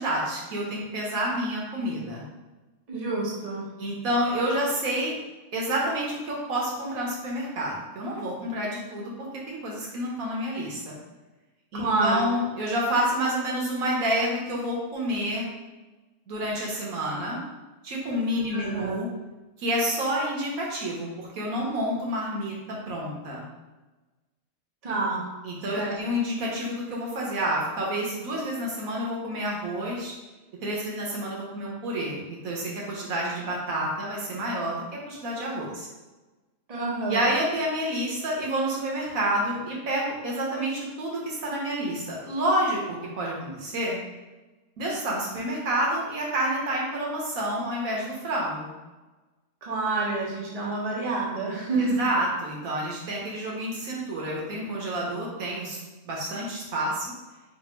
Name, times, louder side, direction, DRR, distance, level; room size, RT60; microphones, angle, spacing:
voice 1, 0.0-2.2 3.8-5.1 5.5-10.9 11.7-15.5 16.3-17.4 17.8-19.1 19.6-22.5 22.9-23.4 25.4-30.1 30.6-35.9 37.1-44.0 44.8-48.7 51.8-55.8 56.0-57.1, right 1 dB, 80° right, -3 dB, 1.4 m, -29 dB
voice 2, 2.9-3.6 11.7-12.2 18.5-19.0 24.8-25.3 25.7-25.9 36.7-37.3 49.6-52.0, right 3 dB, 35° right, -4 dB, 0.8 m, -28 dB
3.4 x 2.5 x 4.3 m, 1.2 s
omnidirectional pair, 1.4 m